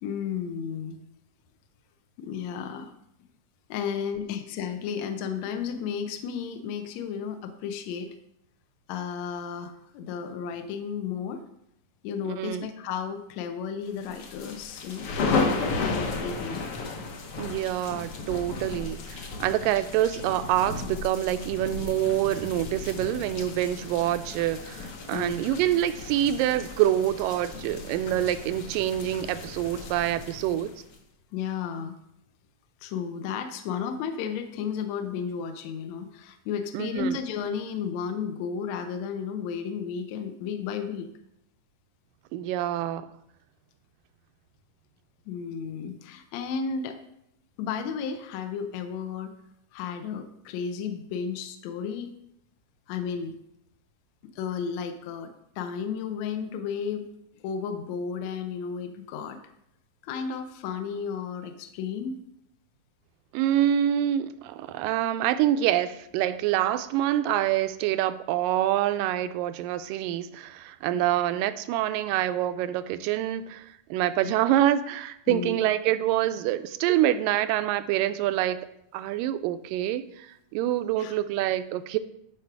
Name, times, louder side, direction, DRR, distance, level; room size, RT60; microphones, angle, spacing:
voice 1, 0.0-1.0 2.2-2.9 3.7-8.1 8.9-11.4 12.0-16.7 25.1-25.3 31.3-32.0 32.8-41.1 45.3-47.0 47.6-49.3 49.7-52.1 52.9-53.4 54.3-57.1 57.4-59.4 60.0-62.2 70.9-71.0 75.3-75.5 81.0-81.2, left 6 dB, 75° left, 7 dB, 1.7 m, -33 dB
sound 1, 14.0-31.0, left 3 dB, 60° left, 1.6 m, -34 dB
voice 2, 17.4-30.7 36.7-37.2 42.3-43.1 63.3-78.6 78.9-82.0, right 12 dB, 90° right, 12 dB, 2.2 m, -26 dB
11.0 x 6.1 x 4.7 m, 0.77 s
omnidirectional pair, 3.8 m